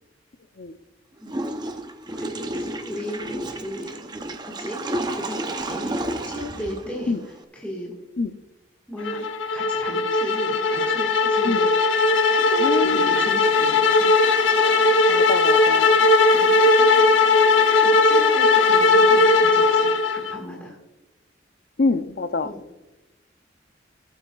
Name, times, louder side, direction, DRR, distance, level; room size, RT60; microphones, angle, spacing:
Water / Toilet flush, 1.2-7.4, right 1 dB, 20° right, 0.7 m, -31 dB
voice 1, 2.1-4.0 4.4-4.8 5.1-6.0 6.3-7.9 8.9-9.3 9.5-11.8 12.3-14.1 16.3-16.5 17.8-20.8 22.4-22.7, equal, 5° left, -3 dB, 1.8 m, -36 dB
sound 1, 9.0-20.4, left 3 dB, 75° left, 1.0 m, -18 dB
voice 2, 12.6-13.1 15.1-16.0 21.8-22.5, left 3 dB, 50° left, 11 dB, 0.6 m, -25 dB
17.0 x 8.4 x 2.4 m, 1.0 s
head